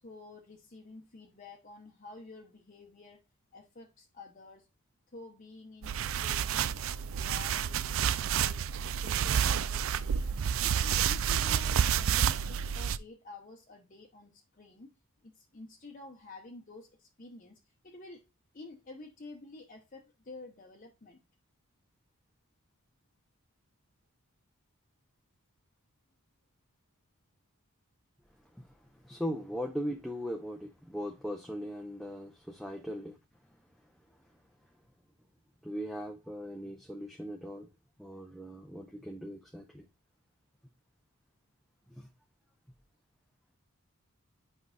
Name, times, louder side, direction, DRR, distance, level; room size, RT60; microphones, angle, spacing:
voice 1, 0.0-3.2 3.5-4.7 5.1-8.6 8.9-10.3 10.6-14.9 15.2-18.2 18.5-21.2, left 3 dB, 35° left, 0.8 m, -50 dB
sound 1, 5.8-13.0, right 8 dB, 65° right, 0.4 m, -29 dB
voice 2, 28.5-33.2 33.5-33.6 35.6-37.7 38.0-39.8 41.9-42.1, equal, ahead, 0.6 m, -39 dB
8.4 x 5.4 x 2.4 m
head